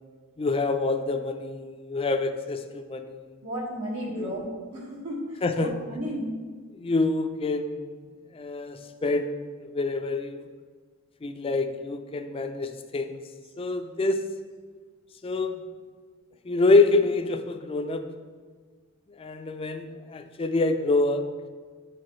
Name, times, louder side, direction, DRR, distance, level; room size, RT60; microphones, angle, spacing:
voice 1, 0.4-3.3 4.1-4.3 5.4-5.7 6.8-7.9 8.3-9.4 9.7-10.5 11.2-13.2 13.6-14.2 15.2-15.6 16.5-18.0 19.2-21.2, left 3 dB, 25° left, 8 dB, 0.4 m, -26 dB
voice 2, 3.4-6.3, equal, 85° right, -4 dB, 1.8 m, -34 dB
9.3 x 4.7 x 3.1 m, 1.5 s
head